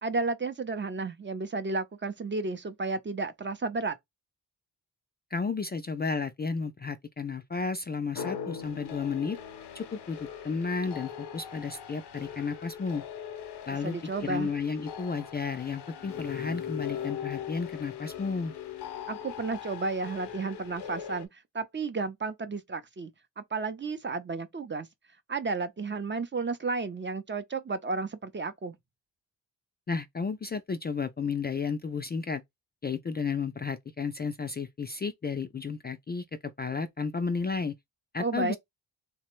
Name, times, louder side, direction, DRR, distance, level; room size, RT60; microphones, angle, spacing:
voice 1, 0.0-4.0 13.8-14.5 19.1-23.1 23.4-24.9 25.3-28.8 38.2-38.6, right 3 dB, 30° right, 0.5 m, -32 dB
voice 2, 5.3-9.4 9.7-13.0 13.7-14.0 14.2-18.5 29.9-32.4 32.8-36.2 36.6-37.7 38.1-38.6, left 5 dB, 25° left, 0.3 m, -32 dB
sound 1, 8.1-21.3, left 8 dB, 85° left, 0.6 m, -40 dB
3.2 x 2.1 x 3.0 m
cardioid pair, 75°, 39 cm